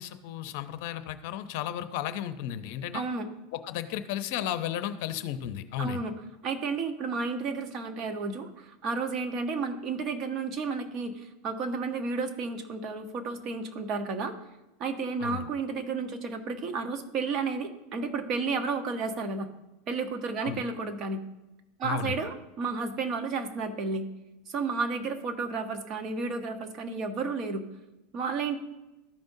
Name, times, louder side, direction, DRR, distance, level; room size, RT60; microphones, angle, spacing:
voice 1, 0.0-3.0 3.5-6.0 15.2-15.5 20.4-20.6 21.8-22.2, left 10 dB, 60° left, 11 dB, 0.6 m, -34 dB
voice 2, 2.9-3.3 5.8-6.1 6.4-14.3 14.8-19.5 19.9-21.2 21.8-24.1 24.5-27.7 28.1-28.6, right 4 dB, 40° right, 6 dB, 1.0 m, -32 dB
13.5 x 5.3 x 2.7 m, 1.0 s
supercardioid pair, 130°, 0 cm